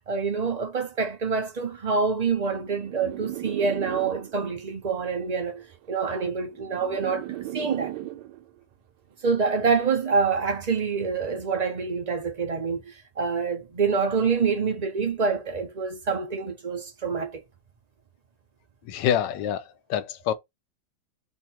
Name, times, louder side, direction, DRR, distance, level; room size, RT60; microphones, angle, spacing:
voice 1, 0.0-7.3 7.5-7.9 9.2-17.4, right 5 dB, 50° right, 0.4 m, -26 dB
sound 1, 2.2-4.6 5.6-8.6, right 15 dB, 80° right, 1.3 m, -37 dB
voice 2, 18.9-19.6 19.9-20.3, left 10 dB, 90° left, 1.3 m, -25 dB
3.3 x 2.3 x 4.3 m
omnidirectional pair, 1.9 m